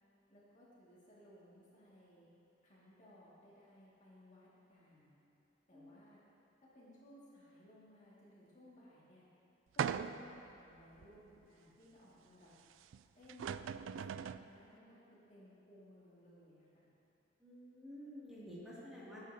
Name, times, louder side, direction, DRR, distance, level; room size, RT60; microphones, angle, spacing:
voice 1, 0.3-2.3 2.6-5.2 5.7-6.2 6.6-9.2 9.7-12.5 13.2-16.9, left 1 dB, 40° left, -8 dB, 2.2 m, -61 dB
sound 1, 9.8-10.4 11.0-11.1 12.9-13.0 13.3-14.5, right 7 dB, 85° right, 0.3 m, -39 dB
voice 2, 17.4-19.2, equal, ahead, -10 dB, 2.5 m, -51 dB
17.5 x 8.8 x 2.8 m, 2.9 s
head